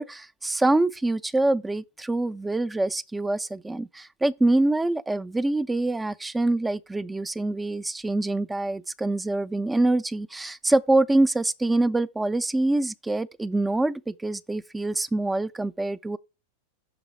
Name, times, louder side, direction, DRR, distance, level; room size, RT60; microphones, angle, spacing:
voice 1, 0.0-16.2, right 2 dB, 10° right, 0.3 m, -25 dB
6.0 x 3.4 x 5.6 m
figure-of-eight pair, 90°, 0 cm